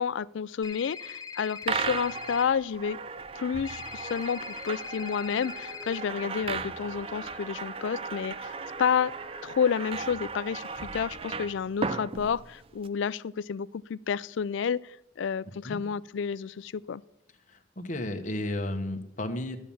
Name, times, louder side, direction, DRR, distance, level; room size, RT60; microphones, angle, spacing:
voice 1, 0.0-3.0 3.4-8.5 8.8-9.1 9.4-14.8 15.2-17.0, left 7 dB, 65° left, 20 dB, 0.4 m, -30 dB
sound 1, 0.6-2.4 3.7-6.0, left 5 dB, 20° left, 0.7 m, -41 dB
sound 2, 1.6-12.9, right 4 dB, 30° right, 0.4 m, -36 dB
sound 3, 4.7-9.8, right 1 dB, 65° right, 2.8 m, -48 dB
voice 2, 17.5-19.6, left 1 dB, 40° left, 6 dB, 1.1 m, -33 dB
12.5 x 7.3 x 7.0 m, 0.78 s
head